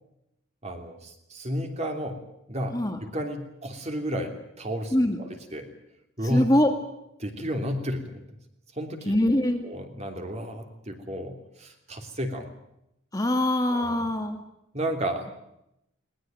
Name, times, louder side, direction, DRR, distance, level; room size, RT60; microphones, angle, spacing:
voice 1, 0.6-2.2 2.5-2.8 3.1-5.3 5.5-5.7 6.2-6.4 7.2-8.2 8.7-9.1 9.6-12.5 13.7-14.0 14.7-15.3, equal, 30° right, 4 dB, 3.1 m, -32 dB
voice 2, 4.9-5.2 6.2-6.7 9.1-9.6 13.1-14.4, left 1 dB, 15° left, 4 dB, 1.8 m, -23 dB
20.0 x 19.5 x 9.2 m, 0.82 s
head